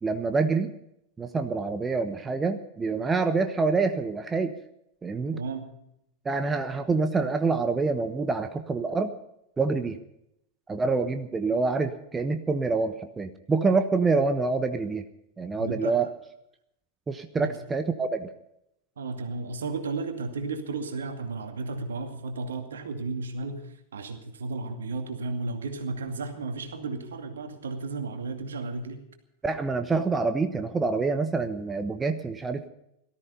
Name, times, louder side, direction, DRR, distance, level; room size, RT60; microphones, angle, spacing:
voice 1, 0.0-0.7 1.2-4.5 5.0-5.4 6.2-9.1 9.6-10.0 10.7-15.0 15.4-16.1 17.1-18.3 29.4-32.7, right 4 dB, 15° right, 9 dB, 1.1 m, -26 dB
voice 2, 5.3-5.7 15.6-16.1 17.4-17.6 19.0-29.0, right 3 dB, 65° right, 6 dB, 2.4 m, -34 dB
18.0 x 14.0 x 5.5 m, 0.78 s
figure-of-eight pair, 90°, 0 cm